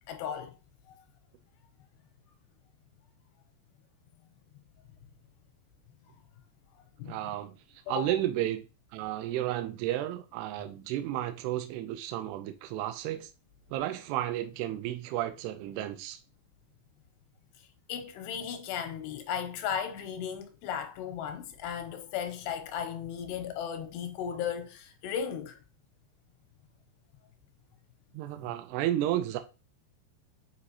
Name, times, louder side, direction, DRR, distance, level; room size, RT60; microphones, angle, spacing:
voice 1, 0.1-0.5 7.0-7.2 7.9-8.2 17.9-25.6, left 8 dB, 80° left, 2.7 m, -35 dB
voice 2, 7.1-7.6 7.9-8.6 8.9-13.3 13.7-16.2 28.1-29.4, right 13 dB, 80° right, 2.5 m, -32 dB
7.5 x 4.8 x 2.8 m
omnidirectional pair, 5.1 m